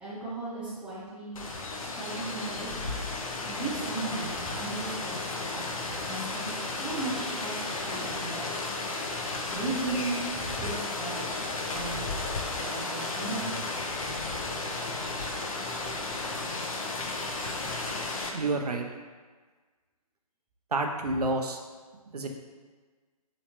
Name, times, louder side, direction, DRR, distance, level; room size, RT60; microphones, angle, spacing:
voice 1, 0.0-1.4 1.8-2.8 3.4-8.6 9.5-11.4 11.6-12.1 12.6-13.6, right 3 dB, 5° right, -9 dB, 0.7 m, -36 dB
Rain, 1.4-18.3, left 3 dB, 60° left, 0.5 m, -34 dB
voice 2, 18.3-18.9 20.7-21.6 22.1-22.3, right 2 dB, 75° right, 3 dB, 0.5 m, -29 dB
3.2 x 3.0 x 2.8 m, 1.4 s
figure-of-eight pair, 135°, 20 cm